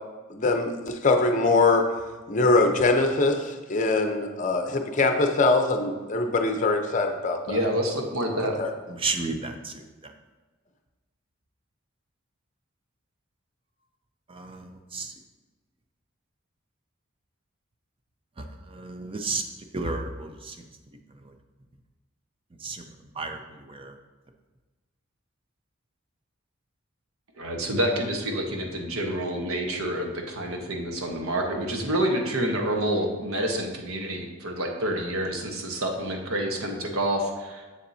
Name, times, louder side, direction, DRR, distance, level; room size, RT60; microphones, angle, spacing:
voice 1, 0.3-1.8 2.3-7.7 8.6-8.7, left 3 dB, 35° left, 5 dB, 0.6 m, -23 dB
voice 2, 7.5-8.6 27.4-37.7, right 1 dB, 85° right, 2 dB, 1.1 m, -28 dB
voice 3, 8.9-9.7 10.0-10.1 14.3-15.1 18.4-19.4 19.7-20.7 22.6-23.4 23.7-23.9, right 3 dB, 25° right, 6 dB, 0.5 m, -33 dB
7.1 x 7.1 x 2.7 m, 1.2 s
head